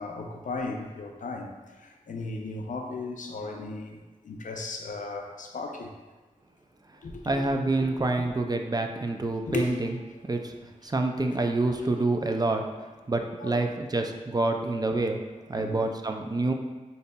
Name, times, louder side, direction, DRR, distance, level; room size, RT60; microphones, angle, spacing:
voice 1, 0.0-5.9 7.0-7.5 9.5-10.0 13.4-13.6 15.5-15.8, left 3 dB, 75° left, 2 dB, 0.5 m, -36 dB
voice 2, 7.2-10.0 10.3-10.5 10.8-12.6 13.1-15.2 15.5-16.5, right 2 dB, 30° right, 4 dB, 0.3 m, -27 dB
5.1 x 2.7 x 2.2 m, 1.3 s
wide cardioid pair, 55°, 13 cm